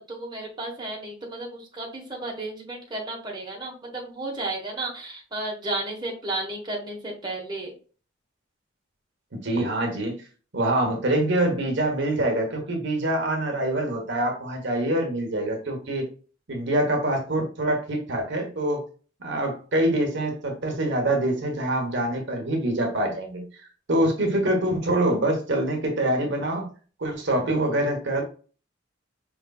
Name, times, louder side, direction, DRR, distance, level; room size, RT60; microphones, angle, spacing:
voice 1, 0.1-7.7, right 2 dB, 20° right, -2 dB, 1.1 m, -33 dB
voice 2, 9.3-10.2 10.5-16.1 16.5-18.8 19.2-26.7 27.0-28.2, right 1 dB, 60° right, 2 dB, 1.0 m, -25 dB
5.2 x 3.2 x 2.3 m, 0.39 s
head